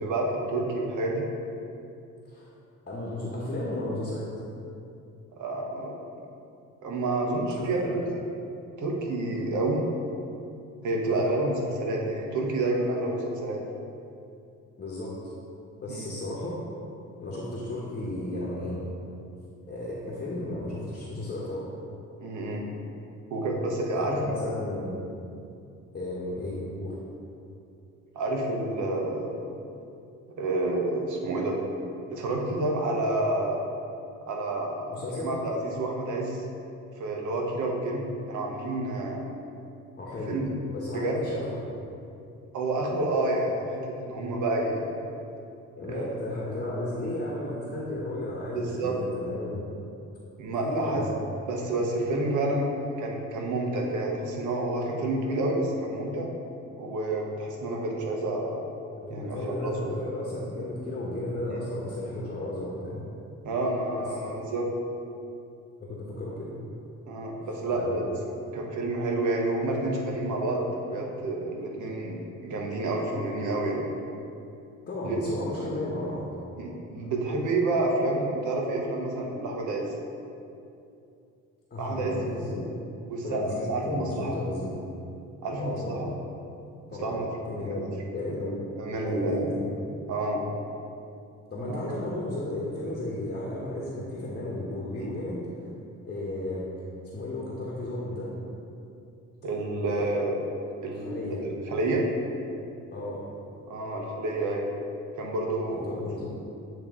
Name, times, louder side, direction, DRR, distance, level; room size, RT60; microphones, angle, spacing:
voice 1, 0.0-1.3 5.3-5.9 6.8-8.2 8.8-9.8 10.8-13.6 15.9-16.1 22.2-22.7 23.3-24.3 28.1-29.4 30.4-31.6 32.1-33.6 34.3-36.4 37.0-39.2 40.3-40.5 40.9-41.2 42.5-45.0 45.9-46.2 48.5-49.0 50.4-51.1 51.5-52.7 53.0-56.3 56.8-58.6 59.1-60.0 61.5-61.6 63.4-64.7 67.1-68.1 68.5-73.8 75.0-75.2 76.6-79.9 81.8-82.2 82.5-82.6 83.1-84.4 85.4-86.1 87.0-87.3 87.6-87.9 88.8-89.5 90.1-90.4 91.7-91.8 95.0-95.1 99.4-100.3 100.8-102.0 103.7-104.7 105.2-106.0, right 2 dB, 75° right, 0 dB, 1.0 m, -29 dB
voice 2, 2.9-4.3 7.6-8.0 11.1-11.2 14.8-15.3 15.8-16.6 17.2-18.8 19.7-21.7 23.9-25.0 25.9-27.0 34.9-35.4 40.0-40.4 40.7-41.6 45.8-49.7 50.6-51.2 53.0-53.1 59.0-63.0 65.8-66.6 67.7-68.0 74.9-76.2 81.7-82.6 83.2-84.7 85.6-86.0 86.9-87.2 87.5-88.6 89.0-89.6 91.5-95.5 96.1-96.6 97.1-98.4 99.8-100.0 101.0-101.4 102.9-103.2 105.7-106.3, left 1 dB, 30° left, -5 dB, 1.1 m, -34 dB
8.7 x 3.1 x 3.7 m, 2.6 s
cardioid pair, 90°, 30 cm